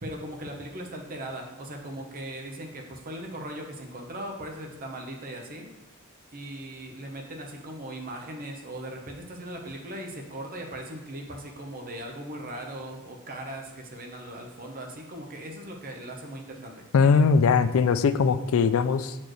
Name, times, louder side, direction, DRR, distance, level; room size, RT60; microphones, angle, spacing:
voice 1, 0.0-5.7 6.3-16.9, right 1 dB, 40° right, 2 dB, 0.9 m, -39 dB
voice 2, 16.9-19.2, left 5 dB, 70° left, 12 dB, 0.3 m, -21 dB
8.2 x 4.4 x 3.1 m, 1.0 s
head